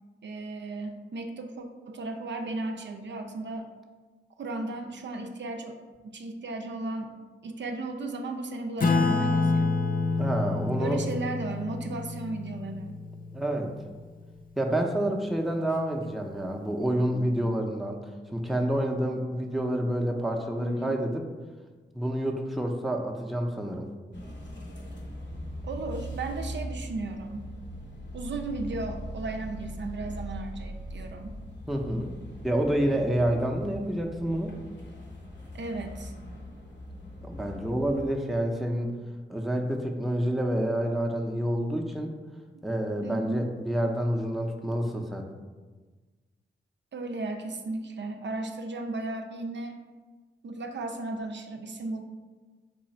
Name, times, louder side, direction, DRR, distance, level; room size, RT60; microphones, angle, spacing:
voice 1, 0.2-3.7 4.4-7.1 7.4-9.7 10.8-13.0 20.6-21.0 25.6-27.4 28.1-31.4 35.5-36.1 43.0-43.5 46.9-49.8 50.4-52.0, right 2 dB, 65° right, 4 dB, 0.5 m, -35 dB
Acoustic guitar / Strum, 8.8-13.8, left 3 dB, 45° left, 0.6 m, -28 dB
voice 2, 10.2-11.0 13.3-13.7 14.6-18.0 18.3-21.2 21.9-23.9 31.7-32.1 32.4-34.5 37.2-38.9 39.3-42.1 42.6-45.2, right 1 dB, ahead, 1 dB, 0.6 m, -28 dB
sound 1, 24.1-38.1, equal, 65° left, 1.0 m, -40 dB
4.7 x 2.4 x 4.2 m, 1.3 s
cardioid pair, 55°, 20 cm